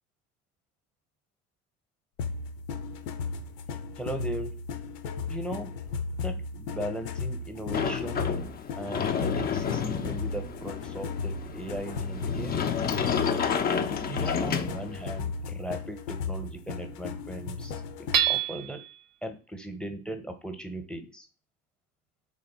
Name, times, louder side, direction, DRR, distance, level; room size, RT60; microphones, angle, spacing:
sound 1, 2.2-18.4, left 4 dB, 75° left, 0.6 m, -36 dB
voice 1, 4.0-4.6 5.3-5.8 6.2-8.3 8.7-12.6 14.1-17.8 18.3-18.8 19.2-21.3, right 1 dB, ahead, 6 dB, 0.7 m, -38 dB
Sliding door, 7.7-15.2, left 7 dB, 20° left, 0.3 m, -30 dB
Hammer / Chink clink, 18.1-18.9, right 11 dB, 45° right, 0.5 m, -26 dB
3.2 x 2.6 x 4.1 m, 0.34 s
hypercardioid pair, 55°, 49 cm